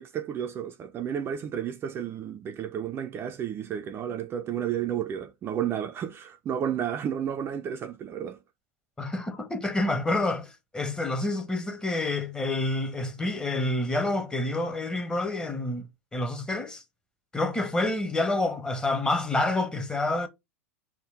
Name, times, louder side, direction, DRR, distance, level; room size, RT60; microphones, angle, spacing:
voice 1, 0.0-8.4, right 9 dB, 30° right, 0.4 m, -32 dB
voice 2, 9.0-16.8 17.3-20.3, left 2 dB, 10° left, 0.8 m, -28 dB
3.6 x 2.2 x 4.3 m
hypercardioid pair, 110°, 8 cm